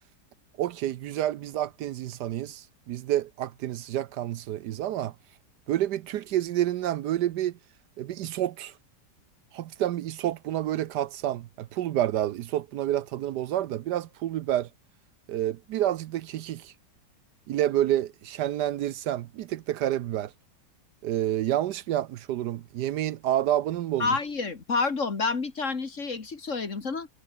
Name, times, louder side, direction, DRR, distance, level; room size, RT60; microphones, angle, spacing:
voice 1, 0.6-5.1 5.7-7.6 8.0-8.7 9.5-14.7 15.3-16.7 17.5-20.3 21.0-24.1, right 12 dB, 70° right, 1.2 m, -29 dB
voice 2, 24.0-27.1, left 4 dB, 45° left, 2.4 m, -29 dB
omnidirectional pair, 1.9 m